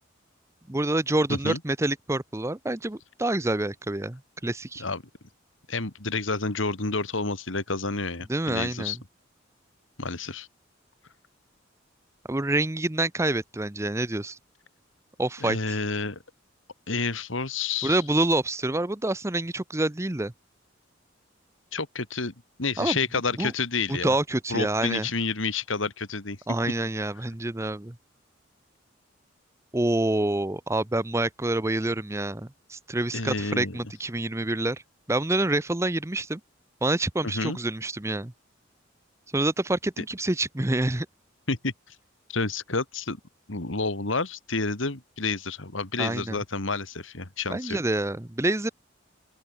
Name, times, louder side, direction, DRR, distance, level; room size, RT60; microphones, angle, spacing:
voice 1, 0.7-4.8 8.3-9.0 12.3-14.4 15.2-15.8 17.8-20.3 22.8-23.0 23.4-23.5 23.9-25.1 26.5-28.0 29.7-34.8 35.1-36.4 36.8-38.3 39.3-41.1 46.0-46.4 47.5-48.7, right 2 dB, 15° right, 0.7 m, -27 dB
voice 2, 5.7-9.0 10.0-10.5 15.4-16.2 16.9-18.0 21.7-22.3 22.6-24.2 24.5-26.4 33.1-33.8 37.2-37.6 41.5-41.9 42.3-43.2 43.5-47.8, left 3 dB, 75° left, 2.4 m, -29 dB
open air
head